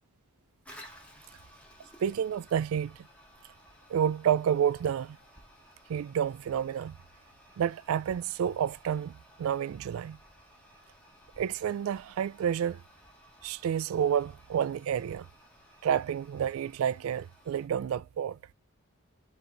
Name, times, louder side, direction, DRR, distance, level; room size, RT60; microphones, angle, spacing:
Toilet flush, 0.6-17.7, equal, 5° left, 1.1 m, -57 dB
voice 1, 2.0-3.0 3.9-5.2 5.9-7.0 7.6-10.2 11.4-12.8 13.4-15.3 15.8-18.4, right 8 dB, 80° right, 0.3 m, -29 dB
4.4 x 3.9 x 2.9 m
head